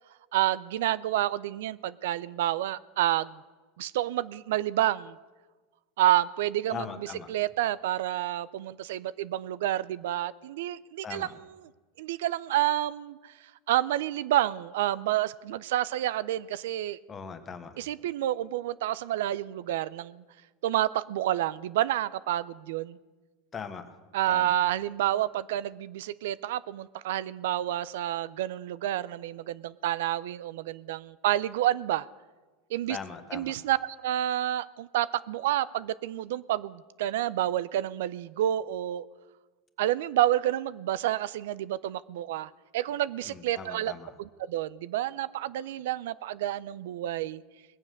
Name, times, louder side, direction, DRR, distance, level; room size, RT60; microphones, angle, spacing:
voice 1, 0.3-3.4 3.8-5.2 6.0-6.9 7.3-11.3 12.0-13.3 13.7-17.0 17.8-20.2 20.6-23.0 24.1-32.1 32.7-33.0 33.3-39.1 39.8-43.9 44.2-47.4, right 13 dB, 80° right, 18 dB, 0.4 m, -29 dB
voice 2, 6.7-7.3 11.0-11.3 17.1-17.8 23.5-24.0 24.3-24.5 32.9-33.5 43.2-44.1, left 6 dB, 25° left, 8 dB, 1.3 m, -40 dB
20.5 x 7.3 x 6.5 m, 1.3 s
supercardioid pair, 125°, 0 cm